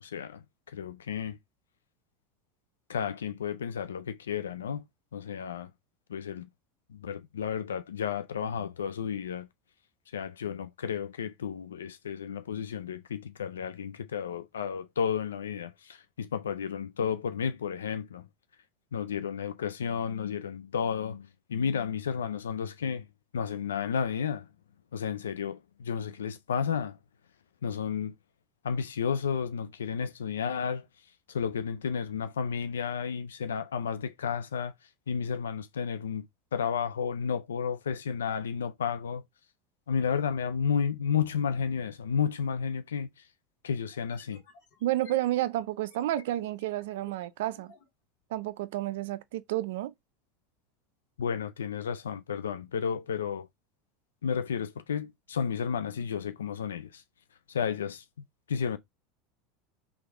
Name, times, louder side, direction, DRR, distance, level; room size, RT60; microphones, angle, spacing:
voice 1, 0.0-1.4 2.9-4.8 5.1-5.7 6.1-6.5 6.9-9.5 10.1-18.3 18.9-23.1 23.3-24.5 24.9-27.0 27.6-28.1 28.6-30.9 31.3-34.7 35.1-36.3 36.5-39.2 39.9-43.3 43.6-44.4 51.2-53.5 54.2-57.0 57.5-58.0 58.5-58.8, left 7 dB, 90° left, 0.3 m, -32 dB
sound 1, 43.9-47.9, left 6 dB, 70° left, 1.7 m, -52 dB
voice 2, 44.8-47.7 48.3-49.9, right 15 dB, 75° right, 0.4 m, -31 dB
3.5 x 3.4 x 3.5 m
hypercardioid pair, 90°, 0 cm